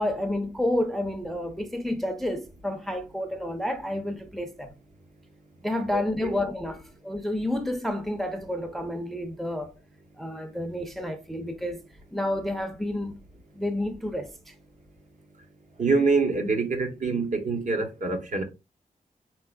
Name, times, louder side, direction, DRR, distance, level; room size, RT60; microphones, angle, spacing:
voice 1, 0.0-4.8 5.6-9.7 10.2-11.8 12.1-13.2 13.5-14.5, left 1 dB, ahead, 0.5 m, -30 dB
voice 2, 5.9-6.4 15.8-18.4, right 4 dB, 55° right, 0.9 m, -25 dB
4.4 x 4.1 x 2.2 m
wide cardioid pair, 150°, 15 cm